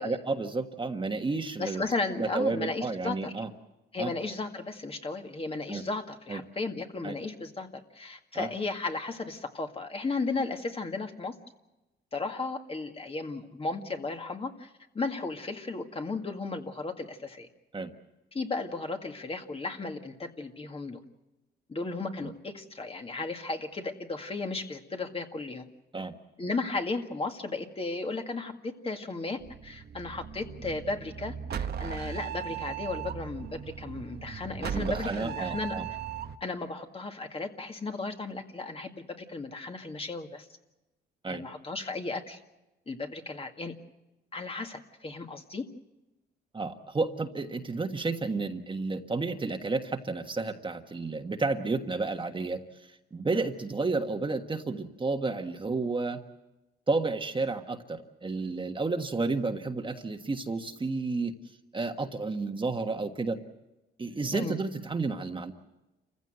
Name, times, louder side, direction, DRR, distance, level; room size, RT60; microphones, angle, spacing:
voice 1, 0.0-1.8 2.2-3.5 4.0-4.1 5.7-5.8 6.3-6.4 7.0-7.1 8.3-8.5 17.7-17.9 22.2-22.3 25.9-26.1 34.7-35.9 41.2-41.4 46.5-56.2 56.9-61.3 61.7-63.4 64.0-65.5, right 3 dB, 25° right, 5 dB, 1.5 m, -31 dB
voice 2, 1.6-3.3 3.9-11.3 12.1-14.7 14.9-17.5 18.3-21.0 21.7-25.7 26.4-35.8 36.4-40.5 41.3-42.4 42.9-43.7 44.3-45.6 64.3-64.6, left 3 dB, 30° left, 4 dB, 2.0 m, -35 dB
sound 1, 29.4-36.4, right 8 dB, 55° right, 1.1 m, -37 dB
28.0 x 15.5 x 8.0 m, 1.0 s
cardioid pair, 90°, 20 cm